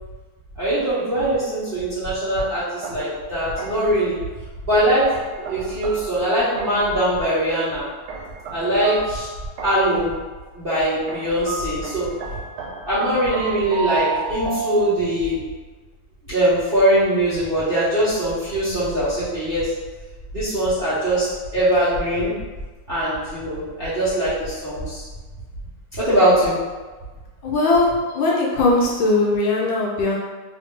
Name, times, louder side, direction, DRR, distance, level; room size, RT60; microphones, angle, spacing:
voice 1, 0.6-4.2 4.6-5.1 5.4-7.9 8.5-9.3 9.6-10.1 10.5-12.1 12.8-15.4 16.3-19.7 20.3-21.2 21.5-22.3 22.9-25.0 25.9-26.5, right 1 dB, 45° right, -13 dB, 0.7 m, -21 dB
sound 1, 2.8-4.0 5.1-7.0 8.1-10.0 11.1-15.4, right 4 dB, 80° right, 1.4 m, -32 dB
voice 2, 27.4-30.2, left 2 dB, 75° left, -3 dB, 1.3 m, -19 dB
3.4 x 2.6 x 3.6 m, 1.3 s
omnidirectional pair, 2.3 m